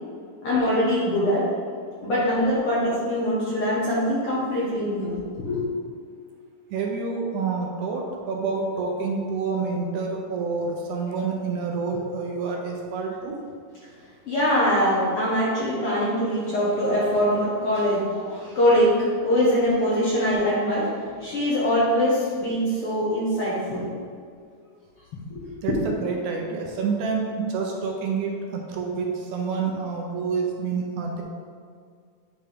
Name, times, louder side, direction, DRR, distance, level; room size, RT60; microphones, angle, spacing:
voice 1, 0.4-1.5 2.0-5.6 14.2-23.9 25.1-25.6, equal, 60° left, -7 dB, 1.6 m, -23 dB
voice 2, 6.7-13.4 25.6-31.2, right 4 dB, 75° right, 0 dB, 2.0 m, -28 dB
8.7 x 3.4 x 5.1 m, 2.2 s
omnidirectional pair, 3.8 m